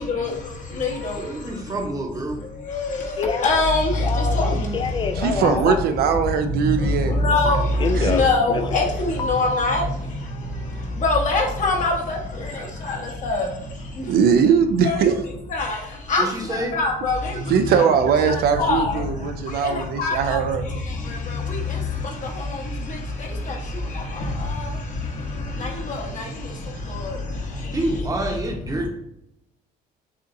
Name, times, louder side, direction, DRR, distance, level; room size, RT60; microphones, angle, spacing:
voice 1, 0.0-1.6 2.4-5.8 6.4-14.2 14.8-15.1 15.5-17.9 18.2-28.0, left 2 dB, 50° left, 1.1 m, -25 dB
voice 2, 1.1-2.4 16.2-16.8 27.7-28.9, right 1 dB, 20° right, 0.9 m, -27 dB
Telephone, 3.2-3.7 4.0-5.8 7.5-8.9 9.2-9.8, left 4 dB, 30° left, 0.3 m, -26 dB
voice 3, 5.1-7.2 7.9-8.2 14.1-15.1 17.5-20.6, right 7 dB, 70° right, 0.5 m, -20 dB
6.8 x 2.5 x 2.6 m
cardioid pair, 110°, 17 cm